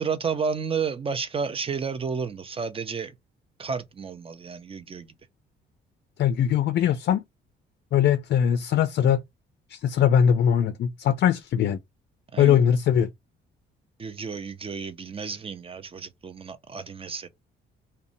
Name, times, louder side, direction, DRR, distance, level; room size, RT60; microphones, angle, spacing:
voice 1, 0.0-3.1 3.6-5.1 12.3-12.6 14.0-17.3, right 5 dB, 30° right, 0.5 m, -31 dB
voice 2, 6.2-7.2 7.9-9.2 9.7-11.8 12.4-13.1, left 9 dB, 55° left, 0.4 m, -21 dB
2.6 x 2.1 x 2.6 m
cardioid pair, 90°, 20 cm